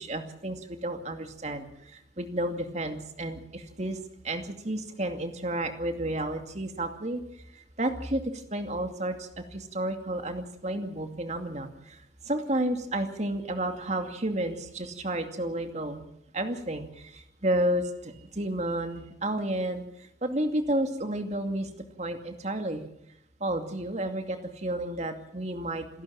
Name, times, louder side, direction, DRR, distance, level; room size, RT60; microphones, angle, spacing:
voice 1, 0.0-4.0 4.2-7.2 7.5-16.0 16.3-21.7 22.0-22.8 23.4-26.0, right 1 dB, 40° right, 6 dB, 2.5 m, -31 dB
27.5 x 12.0 x 8.7 m, 0.79 s
head